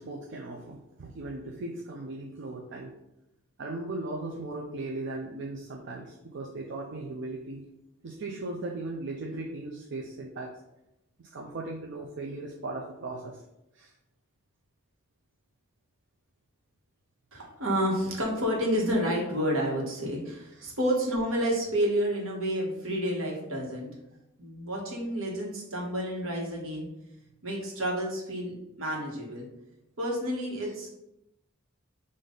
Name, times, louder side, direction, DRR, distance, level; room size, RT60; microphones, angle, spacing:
voice 1, 0.0-2.9 3.6-7.7 8.0-10.5 11.2-13.4 13.7-13.9 20.6-20.7 30.6-30.7, right 2 dB, 60° right, -1 dB, 0.5 m, -38 dB
voice 2, 17.3-23.9 24.4-26.9 27.4-29.5 30.0-30.9, equal, 75° right, -1 dB, 1.3 m, -30 dB
5.4 x 2.5 x 3.8 m, 0.88 s
head